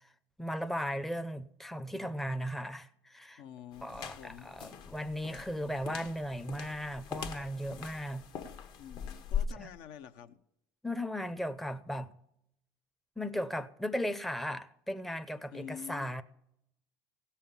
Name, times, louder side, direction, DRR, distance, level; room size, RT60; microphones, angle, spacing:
voice 1, 0.4-3.4 3.8-8.3 9.6-9.7 10.8-12.2 13.2-16.2, equal, ahead, 0.5 m, -36 dB
voice 2, 3.4-4.5 8.8-10.4 15.5-16.1, left 9 dB, 70° left, 0.8 m, -47 dB
sound 1, 3.7-9.5, left 8 dB, 55° left, 1.1 m, -41 dB
16.5 x 5.6 x 7.0 m
supercardioid pair, 110°, 9 cm